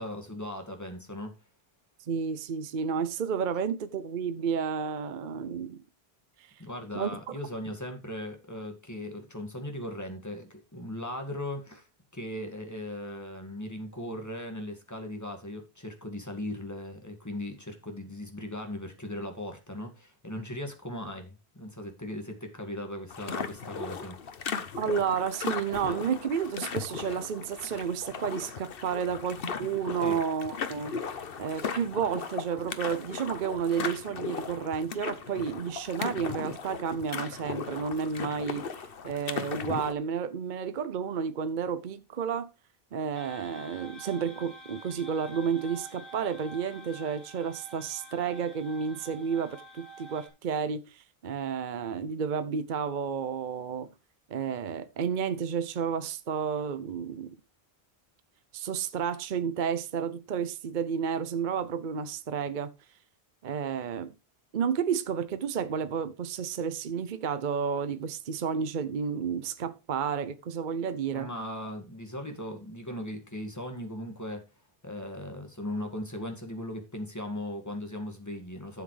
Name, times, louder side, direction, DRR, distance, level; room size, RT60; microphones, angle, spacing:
voice 1, 0.0-1.3 6.6-11.9 12.1-24.2 30.0-30.2 71.1-74.5 74.8-78.8, left 1 dB, 15° left, 2.0 m, -38 dB
voice 2, 2.1-5.8 6.4-6.5 6.9-7.4 24.8-42.5 42.9-53.9 54.3-57.4 58.5-62.7 63.4-64.1 64.5-71.3, right 7 dB, 55° right, 0.8 m, -31 dB
sound 1, 23.1-39.9, left 6 dB, 65° left, 1.1 m, -37 dB
sound 2, 43.1-50.3, right 2 dB, 85° left, 3.9 m, -48 dB
12.0 x 7.5 x 3.3 m
omnidirectional pair, 1.1 m